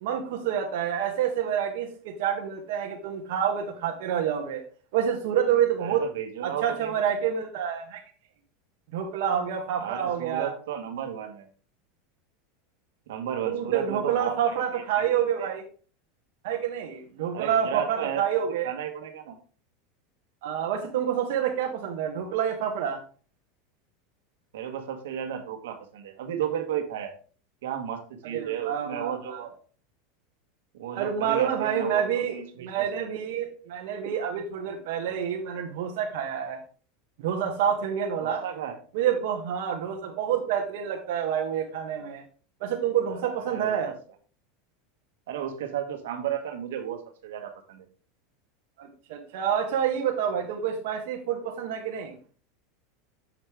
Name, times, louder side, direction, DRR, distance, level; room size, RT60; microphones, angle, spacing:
voice 1, 0.0-4.6 4.9-6.0 6.4-8.0 8.9-10.5 13.4-15.6 16.4-18.7 20.4-23.0 28.3-29.4 30.9-36.6 37.2-38.4 38.9-42.2 42.6-43.9 48.8-52.1, right 8 dB, 70° right, 2 dB, 1.2 m, -28 dB
voice 2, 5.8-6.9 9.8-11.5 13.1-15.1 15.4-15.5 17.3-19.4 24.5-27.1 27.6-29.5 30.7-33.1 38.2-38.8 43.2-43.9 45.3-47.8, right 9 dB, 85° right, 6 dB, 1.4 m, -34 dB
7.4 x 6.0 x 3.5 m, 0.39 s
supercardioid pair, 135°, 0 cm